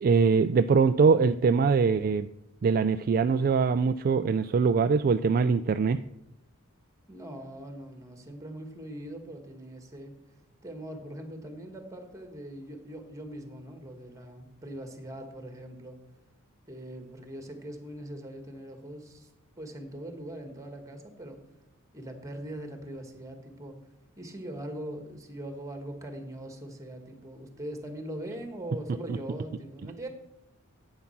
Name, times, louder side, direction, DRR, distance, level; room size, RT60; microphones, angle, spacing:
voice 1, 0.0-2.3 2.6-6.0, right 5 dB, 40° right, 10 dB, 0.3 m, -23 dB
voice 2, 7.1-10.2 10.6-16.0 16.7-19.3 19.6-21.4 21.9-23.8 24.2-30.1, right 1 dB, 15° right, 5 dB, 1.8 m, -41 dB
11.0 x 8.8 x 5.9 m, 0.83 s
head